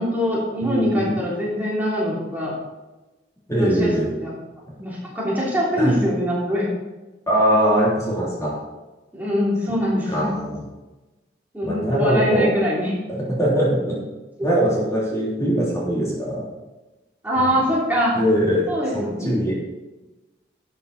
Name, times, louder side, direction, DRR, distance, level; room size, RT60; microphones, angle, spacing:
voice 1, 0.0-2.5 3.5-3.9 4.2-4.3 4.8-6.7 9.1-10.3 11.5-12.9 17.2-18.2 18.7-19.4, equal, 10° right, -6 dB, 3.2 m, -23 dB
voice 2, 0.6-1.2 3.5-4.1 5.8-5.9 7.3-8.5 10.1-10.6 11.6-12.5 13.1-14.0 14.4-16.5 17.5-17.6 18.1-18.7 18.9-19.5, equal, 20° left, -5 dB, 3.3 m, -21 dB
12.0 x 8.6 x 4.2 m, 1.1 s
head